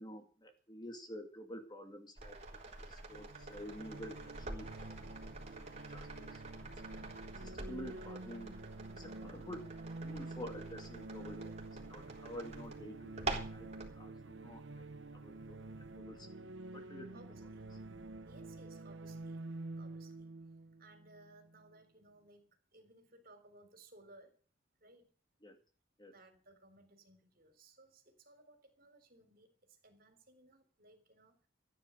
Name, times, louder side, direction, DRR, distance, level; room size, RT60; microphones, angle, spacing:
voice 1, 0.0-2.6 2.9-5.1 5.5-6.7 7.4-8.5 8.9-9.6 10.0-13.7 14.0-15.6 15.9-17.1 25.4-25.6 26.0-26.1, equal, 25° left, 5 dB, 2.5 m, -50 dB
sound 1, 2.2-13.9 15.4-15.5, right 2 dB, 35° right, 3.6 m, -47 dB
sound 2, 3.1-21.7, right 2 dB, 70° right, 0.9 m, -48 dB
voice 2, 7.4-7.8 17.1-17.7 18.2-20.4 20.8-24.3 24.8-25.1 26.0-31.4, right 2 dB, 50° right, 7 dB, 3.8 m, -62 dB
15.0 x 10.0 x 6.6 m, 0.41 s
head